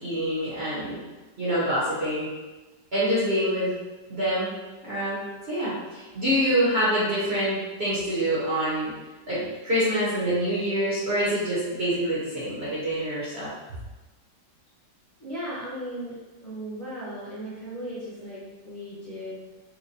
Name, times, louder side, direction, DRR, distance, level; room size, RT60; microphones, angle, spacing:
voice 1, 0.0-1.0 1.4-2.3 2.9-3.7 4.1-4.5 4.8-5.2 5.5-8.9 9.3-13.5, equal, 45° right, -10 dB, 1.0 m, -26 dB
voice 2, 15.2-16.1 16.4-19.3, equal, 30° left, -11 dB, 1.0 m, -36 dB
4.5 x 2.2 x 2.7 m, 1.2 s
omnidirectional pair, 2.0 m